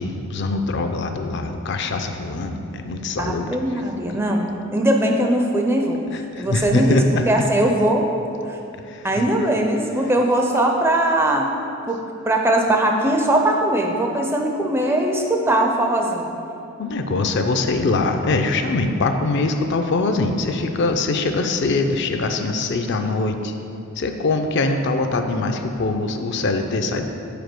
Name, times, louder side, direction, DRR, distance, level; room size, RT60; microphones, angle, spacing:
voice 1, 0.0-3.5 6.1-7.2 8.9-9.3 16.8-23.5 24.0-27.1, left 3 dB, 55° left, 6 dB, 0.4 m, -23 dB
voice 2, 3.2-6.0 6.4-7.0 7.3-8.1 8.4-8.6 9.0-11.5 11.9-12.0 12.3-16.3, right 1 dB, 10° right, 2 dB, 0.4 m, -20 dB
5.1 x 4.9 x 6.0 m, 2.8 s
head